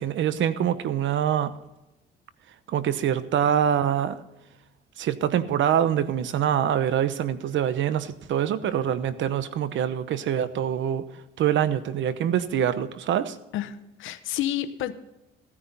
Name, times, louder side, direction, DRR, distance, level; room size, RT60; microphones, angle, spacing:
voice 1, 0.0-1.6 2.7-4.2 5.0-11.1 11.4-13.4, right 9 dB, 75° right, 14 dB, 0.9 m, -25 dB
voice 2, 13.5-14.9, left 12 dB, 90° left, 11 dB, 0.9 m, -30 dB
15.5 x 10.0 x 4.1 m, 0.96 s
cardioid pair, 90°, 20 cm